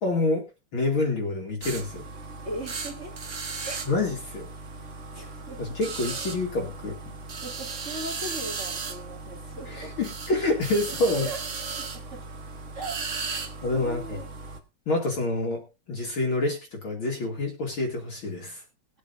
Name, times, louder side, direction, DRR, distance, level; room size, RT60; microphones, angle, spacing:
voice 1, 0.0-0.4 0.7-2.0 3.9-4.5 5.6-7.0 9.7-11.3 13.6-14.2 14.9-15.6 15.9-18.6, left 2 dB, 50° left, 2 dB, 2.1 m, -27 dB
sound 1, 1.6-14.6, right 4 dB, 75° right, 0.6 m, -36 dB
voice 2, 2.4-3.1 3.6-3.9 5.1-5.6 7.4-9.9 10.7-10.8 11.2-11.4 11.9-12.2 12.7-13.0 13.3-14.3, right 2 dB, 25° right, -2 dB, 2.6 m, -39 dB
20.0 x 8.4 x 2.6 m, 0.28 s
omnidirectional pair, 3.4 m